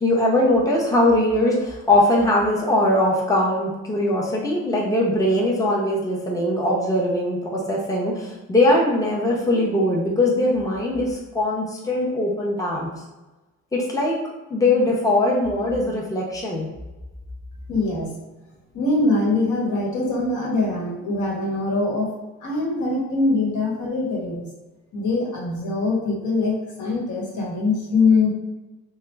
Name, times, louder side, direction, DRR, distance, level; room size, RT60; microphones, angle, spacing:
voice 1, 0.0-12.9 13.7-14.2 14.5-16.7, left 1 dB, 10° left, -3 dB, 0.7 m, -21 dB
voice 2, 17.7-18.1 18.7-22.1 22.4-24.5 24.9-28.3, left 3 dB, 75° left, -3 dB, 1.2 m, -23 dB
2.9 x 2.2 x 3.3 m, 1.1 s
cardioid pair, 90°, 30 cm